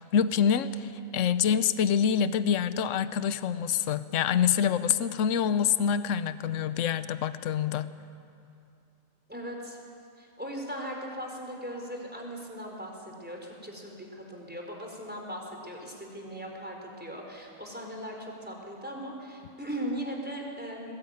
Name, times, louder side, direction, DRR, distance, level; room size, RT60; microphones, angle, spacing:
voice 1, 0.0-7.9, left 8 dB, 70° left, 13 dB, 1.1 m, -26 dB
voice 2, 9.3-9.8 10.2-20.9, equal, 5° right, 0 dB, 4.1 m, -38 dB
22.0 x 19.5 x 9.5 m, 2.5 s
omnidirectional pair, 1.4 m